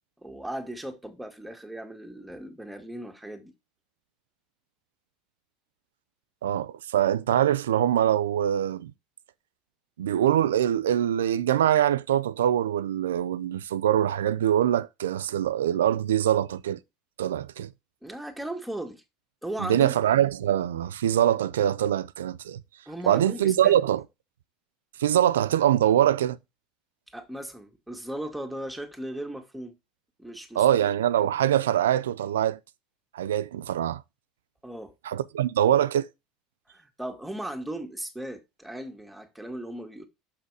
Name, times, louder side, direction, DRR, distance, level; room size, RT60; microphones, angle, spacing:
voice 1, 0.2-3.5 18.0-19.0 19.4-19.9 22.8-23.8 27.1-29.7 30.2-30.6 34.6-34.9 36.7-40.0, right 1 dB, 5° right, 1.9 m, -37 dB
voice 2, 6.4-8.9 10.0-16.8 17.2-17.7 19.6-22.6 23.1-24.0 25.0-26.4 30.6-32.6 33.1-34.0 35.0-36.1, right 11 dB, 90° right, 0.4 m, -23 dB
6.3 x 5.8 x 4.8 m
hypercardioid pair, 90°, 0 cm